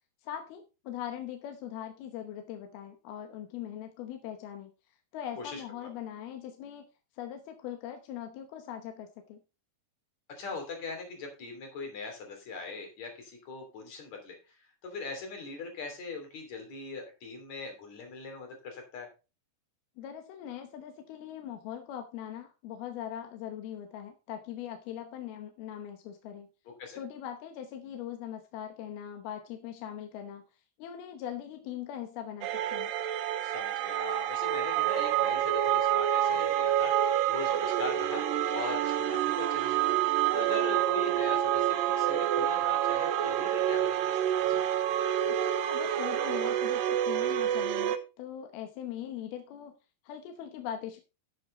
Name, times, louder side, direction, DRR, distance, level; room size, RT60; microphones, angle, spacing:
voice 1, 0.2-4.7 5.1-6.9 7.1-9.4 20.0-26.5 27.0-30.4 30.8-32.9 45.3-49.7 50.0-51.0, left 10 dB, 75° left, 6 dB, 2.7 m, -41 dB
voice 2, 5.4-5.9 10.4-19.1 26.7-27.0 33.4-44.7, left 4 dB, 45° left, 4 dB, 3.9 m, -41 dB
sound 1, 32.4-48.0, right 11 dB, 75° right, 2.2 m, -28 dB
11.5 x 7.7 x 3.8 m, 0.30 s
omnidirectional pair, 4.8 m